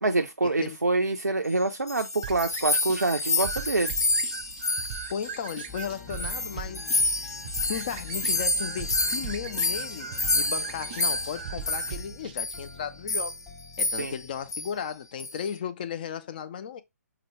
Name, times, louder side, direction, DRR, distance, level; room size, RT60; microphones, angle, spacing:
voice 1, 0.0-3.9 14.0-14.1, right 2 dB, 80° right, 0.5 m, -26 dB
sound 1, 1.6-5.9 6.1-12.1 12.4-12.6 13.1-13.4 13.8-14.2 14.5-14.7 15.2-15.5, left 2 dB, 70° left, 0.7 m, -29 dB
sound 2, 2.2-12.4, right 8 dB, 30° right, 0.4 m, -39 dB
voice 2, 5.1-6.8 7.7-13.4 13.8-16.8, left 8 dB, 30° left, 0.4 m, -35 dB
sound 3, 5.7-14.8, left 5 dB, 15° left, 1.0 m, -46 dB
5.7 x 2.3 x 3.0 m
figure-of-eight pair, 135°, 9 cm